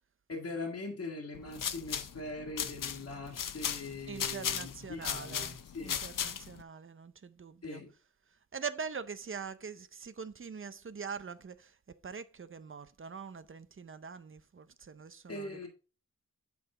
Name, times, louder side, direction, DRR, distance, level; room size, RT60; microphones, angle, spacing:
voice 1, 0.3-6.0 7.6-7.9 15.3-15.7, left 2 dB, 50° left, 1.7 m, -41 dB
sound 1, 1.3-6.6, left 8 dB, 80° left, 0.7 m, -37 dB
voice 2, 4.1-5.6 5.8-7.8 8.5-11.7 12.0-15.7, right 6 dB, 40° right, 0.6 m, -43 dB
8.7 x 5.8 x 3.8 m
wide cardioid pair, 120°, 32 cm